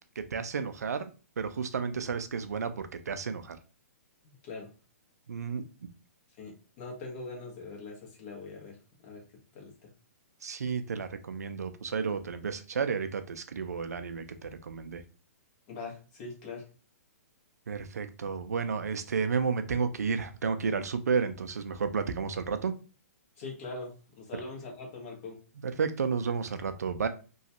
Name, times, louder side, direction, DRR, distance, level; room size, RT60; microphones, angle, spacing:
voice 1, 0.2-1.1 1.4-3.6 5.3-5.6 10.4-15.0 17.7-22.8 25.6-27.1, right 5 dB, 85° right, 10 dB, 0.4 m, -32 dB
voice 2, 4.2-4.7 6.4-9.2 9.5-9.9 15.7-16.6 23.4-25.4, left 3 dB, 45° left, 0 dB, 1.3 m, -42 dB
3.0 x 2.3 x 2.8 m, 0.34 s
hypercardioid pair, 135°, 8 cm